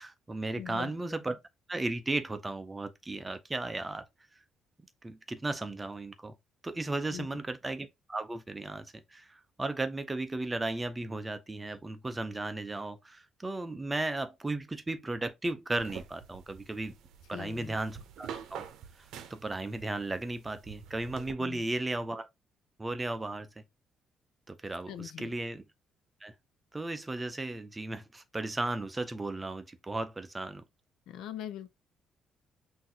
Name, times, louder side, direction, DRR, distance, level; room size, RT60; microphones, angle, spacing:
voice 1, 0.0-1.4 1.7-4.1 5.0-6.3 6.6-16.9 17.3-18.7 19.3-22.3 22.8-23.6 24.5-25.6 26.2-26.3 26.7-30.6, right 2 dB, 10° right, 0.5 m, -35 dB
voice 2, 0.6-1.2 7.1-7.4 17.3-17.8 21.4-21.6 24.9-25.3 31.1-31.7, left 10 dB, 80° left, 0.5 m, -42 dB
sound 1, 15.8-21.3, right 8 dB, 80° right, 0.7 m, -47 dB
5.9 x 2.6 x 2.8 m
cardioid pair, 165°, 0 cm